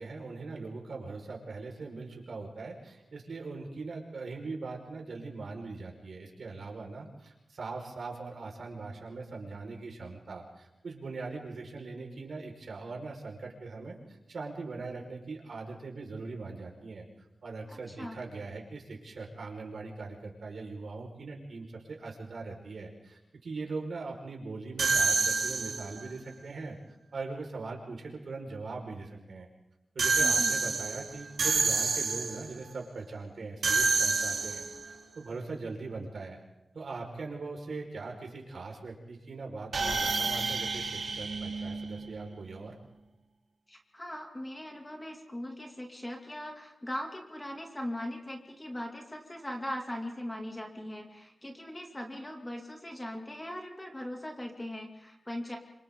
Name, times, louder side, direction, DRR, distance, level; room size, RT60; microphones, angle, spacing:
voice 1, 0.0-17.0 17.4-26.8 27.1-29.5 29.9-36.4 36.7-42.7, right 3 dB, 70° right, 0 dB, 5.1 m, -41 dB
voice 2, 17.7-18.2 30.2-30.6 43.7-55.6, left 1 dB, 15° left, 2 dB, 2.7 m, -40 dB
sound 1, 24.8-26.1 30.0-32.5 33.6-34.9 39.7-42.3, right 4 dB, 85° right, 4.1 m, -28 dB
28.5 x 26.5 x 3.9 m, 0.92 s
wide cardioid pair, 140°, 0 cm